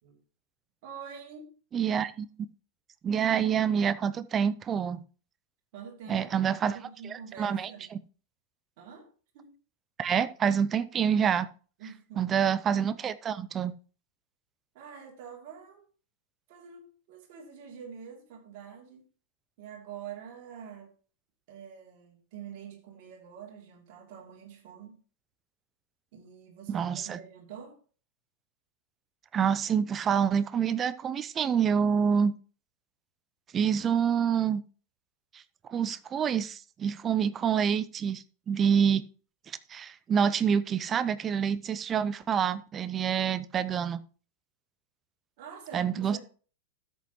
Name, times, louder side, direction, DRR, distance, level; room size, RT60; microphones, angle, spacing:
voice 1, 0.8-1.5 5.7-7.8 8.8-9.1 9.3-9.5 11.8-12.5 14.7-15.8 16.5-19.1 19.6-20.9 21.5-25.0 26.1-27.8 37.1-37.4 45.4-46.2, right 7 dB, 50° right, 3.0 m, -46 dB
voice 2, 1.7-2.5 3.0-5.0 6.1-6.8 7.4-7.7 10.0-11.5 12.2-13.7 26.7-27.2 29.3-32.3 33.5-34.6 35.3-35.4 35.7-39.0 39.5-44.0 45.7-46.2, right 7 dB, 25° right, 0.6 m, -27 dB
13.0 x 7.9 x 3.1 m
figure-of-eight pair, 90°, 0 cm